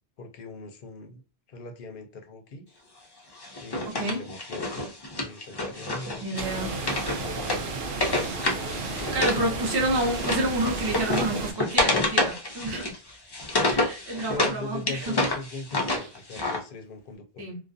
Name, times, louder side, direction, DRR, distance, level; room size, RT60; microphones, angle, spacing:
voice 1, 0.2-1.2 1.5-2.7 3.6-4.9 5.2-7.7 8.4-9.6 13.5-17.5, left 3 dB, 60° left, 0.7 m, -40 dB
Wood, 3.4-9.4 9.7-14.6 14.9-16.6, left 2 dB, 40° left, 0.3 m, -28 dB
voice 2, 3.9-4.2 6.2-6.8 8.8-12.9 13.6-15.2 15.9-16.1 17.4-17.6, right 1 dB, 25° right, 0.7 m, -29 dB
sound 1, 6.4-11.5, right 4 dB, 60° right, 0.7 m, -33 dB
2.4 x 2.2 x 2.4 m
omnidirectional pair, 1.1 m